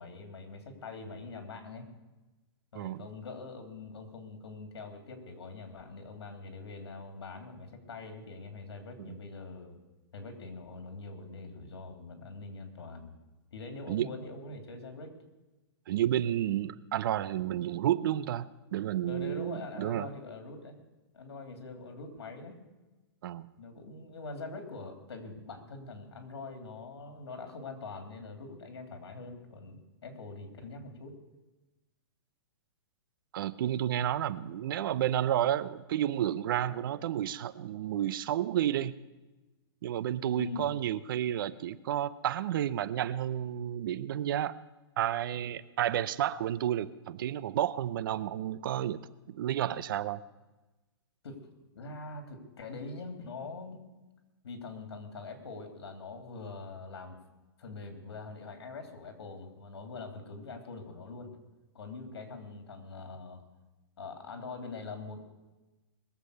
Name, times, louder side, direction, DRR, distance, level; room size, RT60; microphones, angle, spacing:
voice 1, 0.0-1.9 2.7-9.8 10.1-13.2 13.5-15.1 19.0-20.8 21.1-22.6 23.6-31.2 40.3-40.7 51.2-51.4 51.7-53.8 54.4-57.2 57.6-61.3 61.7-63.4 64.0-65.3, left 3 dB, 80° left, 5 dB, 3.2 m, -43 dB
voice 2, 2.7-3.1 9.0-9.1 13.9-14.1 15.9-20.1 23.2-23.5 33.3-38.9 39.8-44.5 45.0-49.0 49.3-50.2, right 11 dB, 55° right, 17 dB, 0.7 m, -31 dB
21.0 x 7.6 x 6.6 m, 1.1 s
hypercardioid pair, 155°, 13 cm